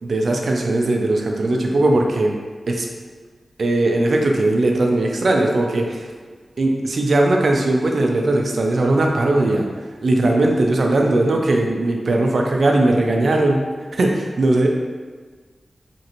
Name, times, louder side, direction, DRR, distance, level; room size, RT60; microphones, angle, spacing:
voice 1, 0.0-2.3 2.7-2.9 3.6-6.1 6.6-9.7 10.0-13.6 13.9-14.7, right 2 dB, 70° right, 1 dB, 0.4 m, -18 dB
2.9 x 2.6 x 2.9 m, 1.5 s
cardioid pair, 55°, 0 cm